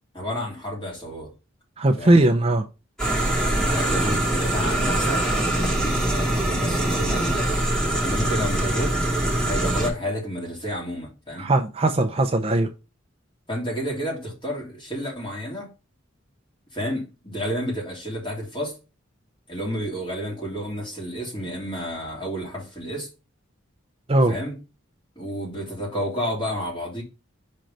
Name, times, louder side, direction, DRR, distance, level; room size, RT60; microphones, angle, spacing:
voice 1, 0.1-1.3 2.0-2.2 3.3-5.2 5.5-7.5 8.0-9.0 9.4-11.5 13.5-15.7 16.7-18.8 19.5-23.1 24.3-24.5 25.2-27.0, equal, 25° left, 2.9 m, -31 dB
voice 2, 1.8-2.7 11.4-12.7 24.1-24.3, right 2 dB, 30° right, 0.5 m, -19 dB
sound 1, 3.0-9.9, right 1 dB, 5° left, 2.0 m, -23 dB
5.2 x 4.5 x 5.1 m
head